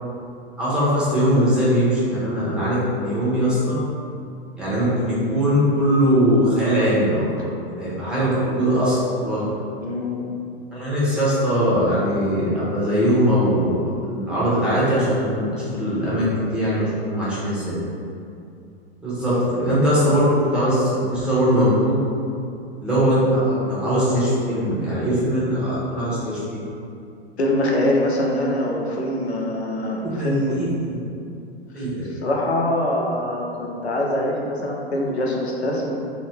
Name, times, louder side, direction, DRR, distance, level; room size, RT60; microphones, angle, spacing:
voice 1, 0.6-3.8 4.6-9.4 10.7-13.7 14.0-17.8 19.0-21.9 22.8-26.6 30.0-31.0 31.7-32.1, equal, 5° right, -10 dB, 0.9 m, -21 dB
voice 2, 9.8-10.2 19.3-19.4 27.4-30.5 31.8-36.0, left 1 dB, 90° left, -1 dB, 0.5 m, -24 dB
2.6 x 2.4 x 3.3 m, 2.5 s
figure-of-eight pair, 95°, 31 cm